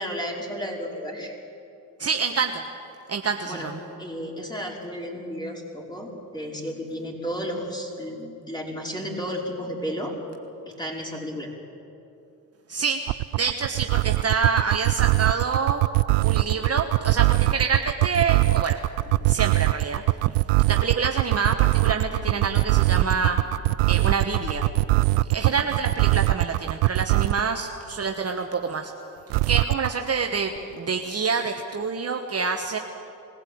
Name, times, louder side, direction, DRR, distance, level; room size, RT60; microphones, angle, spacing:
voice 1, 0.0-1.3 3.4-3.7 4.0-10.2 10.7-11.5 25.4-25.6, equal, 10° left, -1 dB, 5.2 m, -33 dB
voice 2, 2.0-2.6 3.1-3.8 12.7-13.0 13.4-15.9 16.2-18.8 19.3-23.4 23.9-24.7 25.2-28.9 29.5-32.8, right 5 dB, 35° right, 4 dB, 1.4 m, -27 dB
sound 1, 13.1-27.5 29.3-29.9, right 21 dB, 70° right, 0.5 m, -21 dB
sound 2, 16.2-18.0 18.9-20.4 21.8-23.9 24.2-25.9, left 4 dB, 85° left, 4.2 m, -41 dB
21.0 x 16.0 x 8.7 m, 2.7 s
hypercardioid pair, 65°, 45 cm